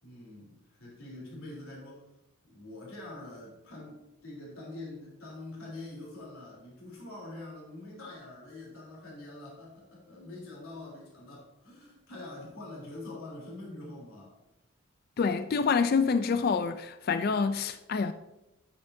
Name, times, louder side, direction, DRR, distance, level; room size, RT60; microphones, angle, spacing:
voice 1, 0.0-2.0 2.4-14.3, left 2 dB, 75° left, 3.3 m, -45 dB
voice 2, 15.2-18.1, left 5 dB, 45° left, 0.3 m, -27 dB
9.5 x 8.3 x 2.6 m
head